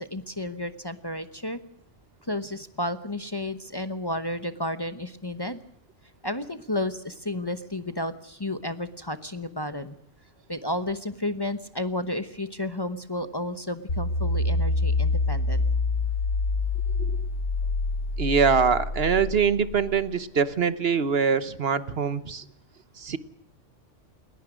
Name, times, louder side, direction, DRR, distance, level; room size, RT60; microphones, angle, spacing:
voice 1, 0.0-1.6 2.3-5.6 6.2-10.0 10.5-15.6, left 1 dB, 20° left, 10 dB, 0.9 m, -32 dB
sound 1, 13.9-20.1, left 3 dB, 85° left, 1.9 m, -26 dB
voice 2, 18.2-22.4 23.0-23.2, right 6 dB, 55° right, 14 dB, 1.2 m, -23 dB
21.0 x 20.0 x 6.3 m, 0.70 s
omnidirectional pair, 1.2 m